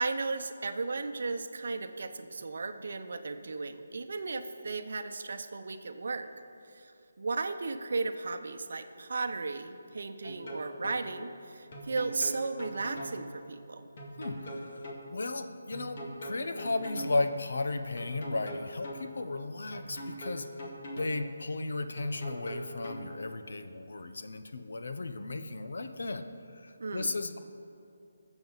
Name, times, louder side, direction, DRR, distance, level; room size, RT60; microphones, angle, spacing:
voice 1, 0.0-6.3 6.7-6.9 7.2-13.8 26.8-27.1, right 3 dB, 60° right, 8 dB, 0.8 m, -35 dB
sound 1, 10.2-11.0 11.7-13.2 14.0-15.0 15.7-17.2 18.0-19.0 19.7-21.2 22.0-23.0, equal, 40° left, 2.0 m, -41 dB
voice 2, 14.2-14.8 15.1-20.5 21.0-27.4, left 2 dB, 70° left, 8 dB, 0.9 m, -35 dB
21.0 x 7.1 x 4.0 m, 2.6 s
hypercardioid pair, 170°, 0 cm